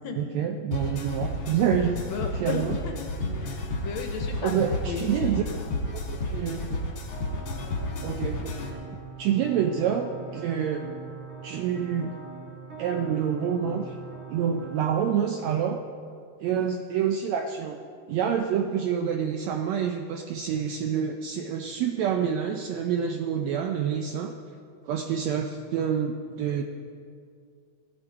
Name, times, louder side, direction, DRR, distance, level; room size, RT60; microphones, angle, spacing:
voice 1, 0.2-2.0 2.3-2.8 4.4-5.4 5.9-6.8 8.0-8.5 9.2-10.9 11.4-12.1 12.8-14.0 14.3-15.8 16.4-17.8 18.1-24.3 24.8-26.6, right 8 dB, 80° right, 5 dB, 1.6 m, -27 dB
sound 1, 0.7-8.7, left 2 dB, 45° left, 2.0 m, -32 dB
voice 2, 2.1-2.9 3.4-5.6, left 5 dB, 70° left, 4 dB, 1.8 m, -35 dB
sound 2, 7.1-14.8, right 5 dB, 40° right, 1.1 m, -42 dB
15.5 x 10.5 x 4.6 m, 2.3 s
omnidirectional pair, 3.7 m